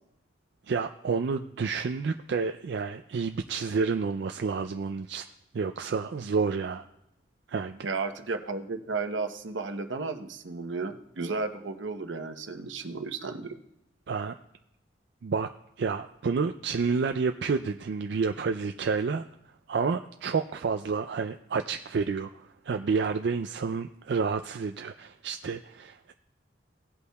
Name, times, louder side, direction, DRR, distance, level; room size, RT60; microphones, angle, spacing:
voice 1, 0.7-5.2 5.5-6.8 7.5-7.8 14.1-14.4 15.2-15.5 15.8-19.2 19.7-26.1, right 5 dB, 60° right, 6 dB, 0.4 m, -29 dB
voice 2, 7.8-13.6, right 3 dB, 80° right, 6 dB, 0.9 m, -33 dB
17.5 x 8.2 x 2.3 m, 0.82 s
head